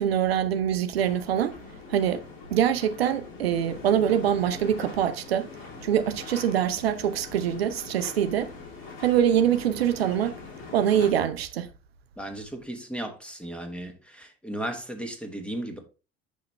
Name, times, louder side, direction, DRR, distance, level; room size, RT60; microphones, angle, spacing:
voice 1, 0.0-1.6 1.9-2.2 2.5-5.5 5.8-8.5 9.0-10.4 10.7-11.7, right 9 dB, 75° right, 0.6 m, -24 dB
sound 1, 0.9-11.1, left 4 dB, 55° left, 3.5 m, -43 dB
voice 2, 12.2-15.8, right 1 dB, 5° left, 1.7 m, -35 dB
7.4 x 5.7 x 3.2 m
figure-of-eight pair, 65°, 31 cm